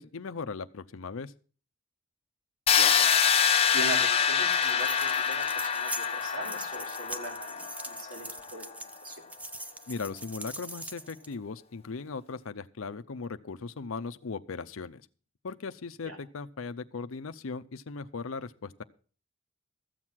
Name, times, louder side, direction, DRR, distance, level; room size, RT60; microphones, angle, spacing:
voice 1, 0.0-1.3 9.9-15.0 15.4-18.8, left 4 dB, 75° left, 11 dB, 0.6 m, -38 dB
sound 1, 2.7-8.5, left 7 dB, 30° left, 0.7 m, -26 dB
voice 2, 2.7-3.1 3.7-8.3 8.5-9.2 16.0-16.2, right 1 dB, 85° right, 2 dB, 3.6 m, -40 dB
sound 2, 4.4-11.3, right 1 dB, 5° right, 0.6 m, -42 dB
14.0 x 7.5 x 6.2 m, 0.41 s
head